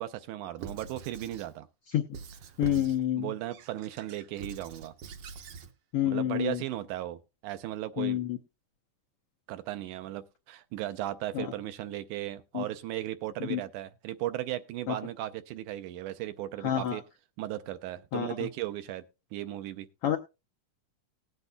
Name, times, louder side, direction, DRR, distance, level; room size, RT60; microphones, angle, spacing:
voice 1, 0.0-1.7 2.8-4.9 6.0-8.2 9.5-17.0 17.4-19.0 19.3-19.9, right 14 dB, 85° right, 2.2 m, -36 dB
Squeak / Writing, 0.6-1.5 2.1-3.0 3.5-5.7, right 5 dB, 70° right, 1.5 m, -43 dB
voice 2, 2.6-3.3 5.9-6.6 8.0-8.4 11.3-11.5 12.5-12.6 13.5-13.6 14.9-15.0 16.6-17.0 18.1-18.3 20.0-20.2, left 11 dB, 90° left, 1.2 m, -28 dB
19.5 x 8.1 x 2.2 m
omnidirectional pair, 3.5 m